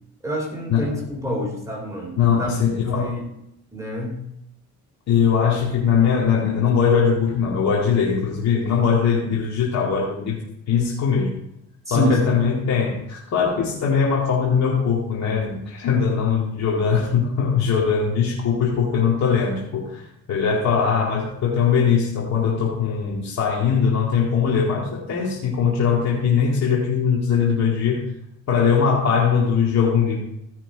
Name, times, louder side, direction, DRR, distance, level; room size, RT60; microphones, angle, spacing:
voice 1, 0.2-2.5 2.8-3.2 3.7-4.2 8.8-9.0 11.8-12.3, equal, 10° right, -2 dB, 3.1 m, -27 dB
voice 2, 2.2-3.1 5.1-10.4 10.7-11.3 11.9-28.1 28.5-30.2, left 6 dB, 60° left, -4 dB, 2.1 m, -21 dB
15.0 x 5.9 x 4.9 m, 0.79 s
cardioid pair, 90°, 30 cm